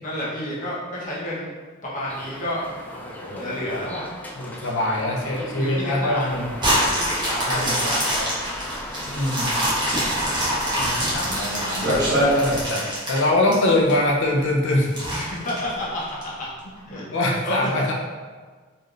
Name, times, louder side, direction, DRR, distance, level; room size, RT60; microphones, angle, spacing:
voice 1, 0.0-1.5 1.8-2.6 2.9-4.1 5.4-6.4 6.9-8.3 10.2-10.8 15.1-16.5 16.9-17.7, left 1 dB, 40° left, -7 dB, 1.1 m, -31 dB
sound 1, 2.1-12.7, left 1 dB, 10° left, 0.3 m, -38 dB
voice 2, 4.4-6.5 7.5-7.8 9.1-9.5 10.8-12.0 12.3-15.0 16.9-17.9, left 1 dB, 65° left, -1 dB, 0.7 m, -23 dB
sound 2, 6.3-12.7, equal, 60° right, 1.0 m, -26 dB
sound 3, 6.6-13.9 14.4-14.5 14.9-16.2 16.8-16.9, equal, 20° right, 1.2 m, -25 dB
4.2 x 3.2 x 2.5 m, 1.5 s
head